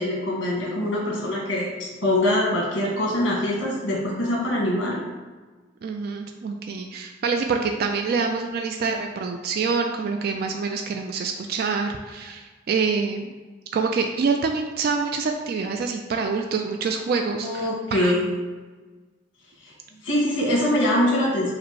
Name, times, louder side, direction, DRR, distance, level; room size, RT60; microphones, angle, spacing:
voice 1, 0.0-5.0 17.4-18.3 19.6-19.7 20.0-21.5, left 1 dB, 70° left, -4 dB, 1.5 m, -23 dB
voice 2, 5.8-13.3 13.7-18.1, right 5 dB, 50° right, 4 dB, 0.3 m, -26 dB
4.9 x 2.1 x 4.6 m, 1.3 s
head